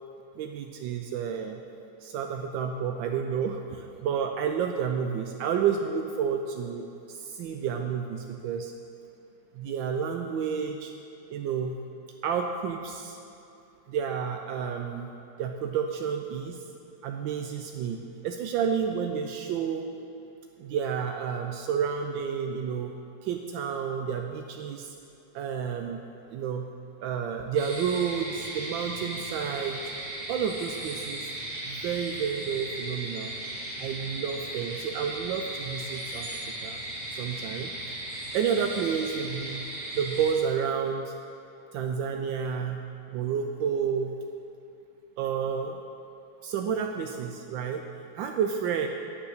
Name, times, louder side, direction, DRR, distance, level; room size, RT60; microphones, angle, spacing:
voice 1, 0.4-1.6 2.0-8.7 9.5-10.9 11.3-11.8 12.2-13.2 13.9-15.1 15.4-16.6 17.0-19.9 20.6-22.9 23.2-24.9 25.3-26.0 26.3-26.7 27.0-29.8 30.3-31.3 31.7-33.3 33.8-36.8 37.1-37.7 38.3-39.6 39.9-41.2 41.7-42.9 43.1-44.1 45.2-45.8 46.4-47.8 48.1-48.9, right 7 dB, 85° right, 4 dB, 1.4 m, -30 dB
sound 1, 27.5-40.3, right 1 dB, 60° right, 2.8 m, -37 dB
9.5 x 8.6 x 6.4 m, 2.8 s
omnidirectional pair, 2.0 m